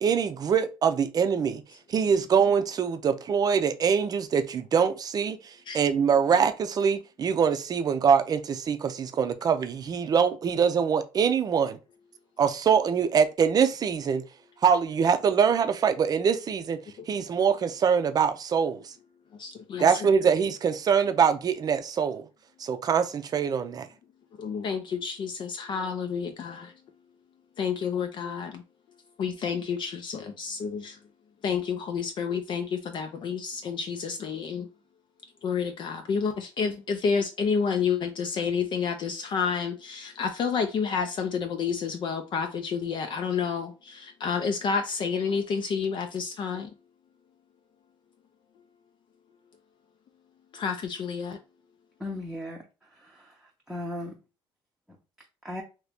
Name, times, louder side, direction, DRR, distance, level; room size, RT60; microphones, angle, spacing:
voice 1, 0.0-1.6 1.9-11.8 12.4-14.2 14.6-16.8 17.1-18.9 19.8-22.2 22.6-23.9, right 6 dB, 40° right, 0.5 m, -24 dB
voice 2, 19.4-19.9 24.4-26.7 27.6-28.6 29.2-31.0 31.4-34.7 35.4-46.7 50.5-51.4, left 6 dB, 50° left, 0.5 m, -29 dB
voice 3, 52.0-52.6 52.9-54.2 55.4-55.6, left 1 dB, 5° right, 0.7 m, -37 dB
2.9 x 2.7 x 3.4 m
cardioid pair, 105°, 10 cm